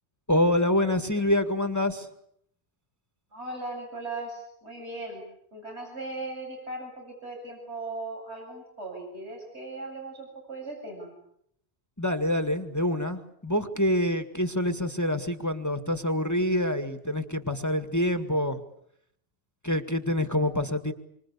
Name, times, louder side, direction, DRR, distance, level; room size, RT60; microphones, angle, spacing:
voice 1, 0.3-2.1 12.0-18.6 19.6-20.9, left 1 dB, 15° left, 8 dB, 1.8 m, -26 dB
voice 2, 3.3-5.2 5.5-11.1, right 2 dB, 70° right, 1 dB, 8.2 m, -38 dB
27.5 x 25.0 x 8.5 m, 0.71 s
omnidirectional pair, 1.2 m